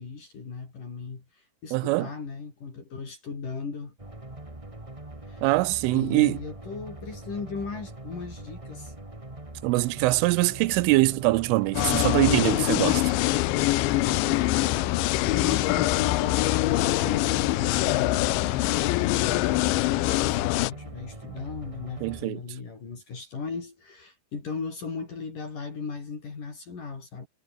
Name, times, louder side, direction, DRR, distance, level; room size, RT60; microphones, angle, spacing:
voice 1, 0.0-4.0 5.3-5.4 5.9-8.9 15.3-16.4 16.6-19.5 20.2-27.3, left 5 dB, 40° left, 5.9 m, -37 dB
voice 2, 1.7-2.1 5.4-6.4 9.6-13.2 22.0-22.4, right 20 dB, 80° right, 3.0 m, -23 dB
sound 1, 4.0-22.3, right 2 dB, 25° right, 0.7 m, -42 dB
sound 2, 11.7-20.7, left 19 dB, 80° left, 2.8 m, -24 dB
omnidirectional pair, 5.9 m